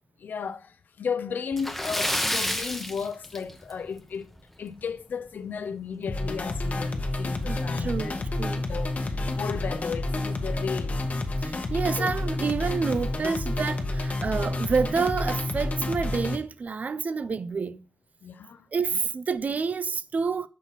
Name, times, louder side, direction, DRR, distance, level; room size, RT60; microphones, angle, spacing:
voice 1, 0.2-4.2 4.6-8.2 8.7-11.0 12.0-12.1 18.2-18.7, left 6 dB, 80° left, 0.4 m, -34 dB
Splash splatter, 1.5-3.9 4.2-4.4 4.8-4.9 6.4-6.5 6.8-6.9 7.5-7.8, left 1 dB, 5° left, 0.6 m, -29 dB
sound 1, 6.1-16.4, left 2 dB, 50° left, 0.9 m, -29 dB
voice 2, 7.5-8.7 11.4-17.8 18.7-20.5, right 5 dB, 55° right, 0.4 m, -28 dB
6.1 x 2.9 x 5.4 m
cardioid pair, 70°, 3 cm